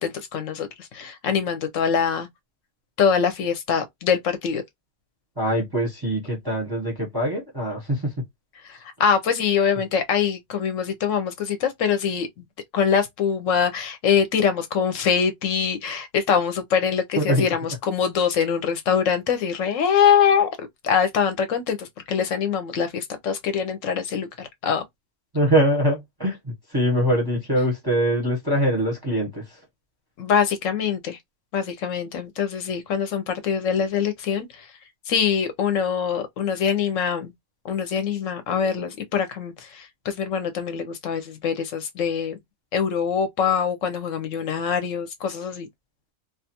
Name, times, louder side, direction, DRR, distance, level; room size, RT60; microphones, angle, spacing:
voice 1, 0.0-2.3 3.0-4.6 8.6-12.3 12.7-20.5 20.8-24.8 30.2-31.2 31.5-34.7 35.1-37.3 37.6-42.4 42.7-45.7, left 7 dB, 70° left, 0.9 m, -23 dB
voice 2, 5.4-8.2 17.2-17.5 25.3-29.6, equal, 25° right, 0.6 m, -23 dB
2.4 x 2.3 x 2.7 m
omnidirectional pair, 1.5 m